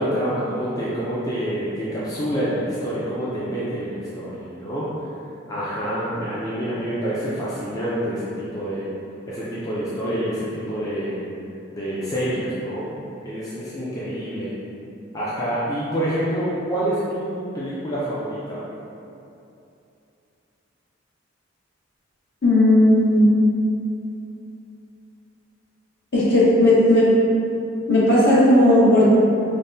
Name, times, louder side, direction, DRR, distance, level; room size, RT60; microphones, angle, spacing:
voice 1, 0.0-4.9 5.5-8.9 9.3-11.2 11.7-12.9 13.2-14.5 15.1-18.6, equal, 15° left, -9 dB, 0.4 m, -27 dB
voice 2, 22.4-23.3 26.1-27.1 27.9-29.1, left 1 dB, 55° left, -8 dB, 1.0 m, -15 dB
5.2 x 2.1 x 2.6 m, 2.7 s
head